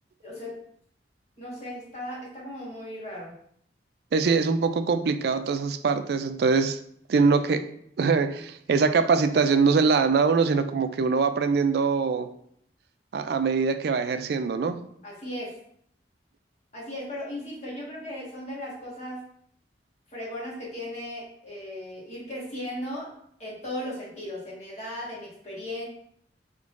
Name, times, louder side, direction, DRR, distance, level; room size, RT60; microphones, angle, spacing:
voice 1, 0.2-0.5 1.4-3.3 15.0-15.5 16.7-19.2 20.1-23.1 23.4-25.9, left 1 dB, 35° left, -5 dB, 1.4 m, -36 dB
voice 2, 4.1-6.8 7.1-7.6 8.0-12.3 13.1-14.8, right 5 dB, 60° right, 10 dB, 0.3 m, -23 dB
4.5 x 3.6 x 2.5 m, 0.68 s
head